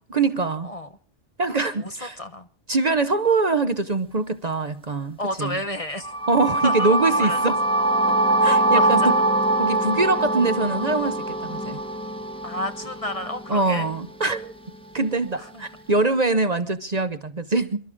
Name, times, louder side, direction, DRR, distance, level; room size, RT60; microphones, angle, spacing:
voice 1, 0.1-0.7 1.4-2.2 2.7-5.5 6.3-7.6 8.4-9.1 9.6-11.8 13.5-14.6 14.9-17.8, right 3 dB, 40° right, 0.9 m, -23 dB
voice 2, 1.8-2.5 5.2-6.1 6.6-7.4 8.4-9.1 12.4-13.9 15.4-15.6, left 1 dB, 35° left, 0.9 m, -31 dB
sound 1, 6.0-13.9, right 2 dB, 5° left, 1.2 m, -23 dB
27.5 x 12.5 x 3.6 m
omnidirectional pair, 1.2 m